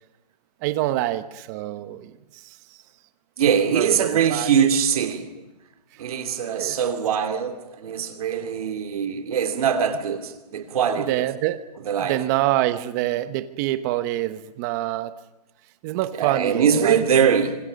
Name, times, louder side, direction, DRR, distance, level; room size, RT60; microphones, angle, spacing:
voice 1, 0.6-2.6 3.7-4.5 6.5-6.8 11.1-11.7 12.0-15.1 15.8-17.3, right 15 dB, 25° right, 1.1 m, -26 dB
voice 2, 3.4-5.3 6.0-11.3 11.8-12.2 16.1-17.6, right 7 dB, 60° right, 2.9 m, -22 dB
25.5 x 25.5 x 5.4 m
hypercardioid pair, 160°, 21 cm